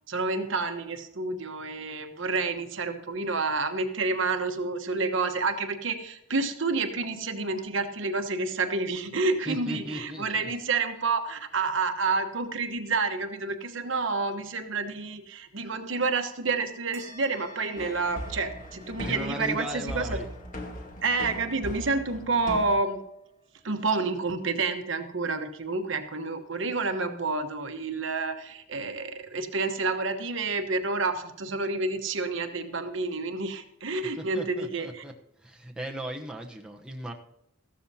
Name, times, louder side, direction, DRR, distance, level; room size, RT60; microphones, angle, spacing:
voice 1, 0.1-20.2 21.0-23.0 23.6-35.0, right 3 dB, 65° right, 7 dB, 1.1 m, -29 dB
voice 2, 9.5-10.5 19.0-20.3 34.2-35.1 35.4-37.1, equal, 5° right, 0 dB, 0.9 m, -37 dB
sound 1, 16.9-25.8, right 1 dB, 30° right, 3.1 m, -55 dB
sound 2, 17.8-22.8, equal, 40° left, 1.5 m, -39 dB
14.5 x 13.0 x 2.8 m, 0.83 s
head